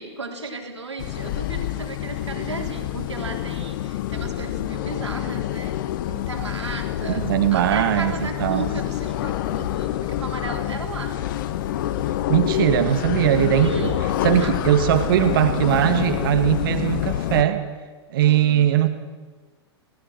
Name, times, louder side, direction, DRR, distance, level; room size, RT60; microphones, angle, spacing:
voice 1, 0.0-5.8 6.1-11.2 13.5-14.0 14.4-14.6 18.2-18.7, right 3 dB, 75° right, 3 dB, 3.9 m, -35 dB
sound 1, 1.0-17.4, left 13 dB, 45° left, 1.2 m, -27 dB
voice 2, 7.1-8.7 12.3-13.9 14.2-17.6 18.1-18.9, right 11 dB, 50° right, 8 dB, 2.3 m, -20 dB
28.5 x 19.0 x 6.3 m, 1.4 s
figure-of-eight pair, 105°, 15 cm